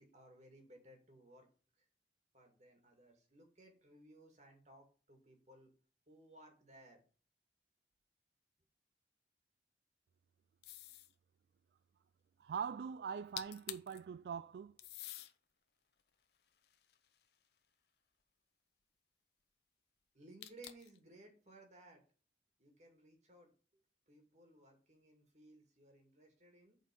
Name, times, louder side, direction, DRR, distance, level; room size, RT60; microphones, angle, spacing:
voice 1, 0.0-1.5 1.8-1.9 2.3-5.7 6.1-7.0 20.1-22.0 22.6-23.8 24.1-26.8, right 1 dB, 40° right, 2.4 m, -61 dB
sound 1, 10.6-11.1 13.1-13.2 13.4-14.0 14.8-15.3 16.0-17.5 20.4-21.0, left 12 dB, 65° left, 0.8 m, -49 dB
voice 2, 12.4-14.8, right 6 dB, 65° right, 0.3 m, -42 dB
8.1 x 4.4 x 5.3 m
head